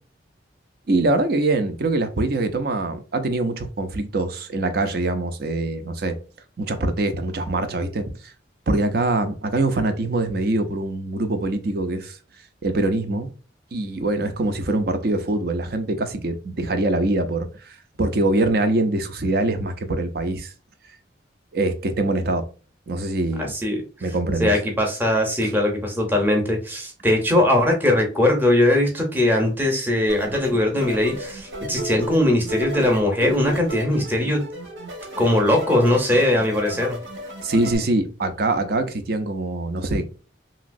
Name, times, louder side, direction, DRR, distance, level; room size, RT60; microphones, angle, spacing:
voice 1, 0.9-6.2 6.6-8.3 8.7-12.2 12.6-13.3 13.7-20.5 21.5-22.5 22.9-23.5 24.0-24.6 25.4-25.5 37.4-40.1, right 2 dB, 55° right, 0.5 m, -23 dB
voice 2, 23.4-23.8 24.4-34.4 35.2-37.0, left 1 dB, 10° right, 0.7 m, -20 dB
sound 1, 30.1-37.8, right 1 dB, 85° right, 1.4 m, -33 dB
3.0 x 2.8 x 2.5 m
head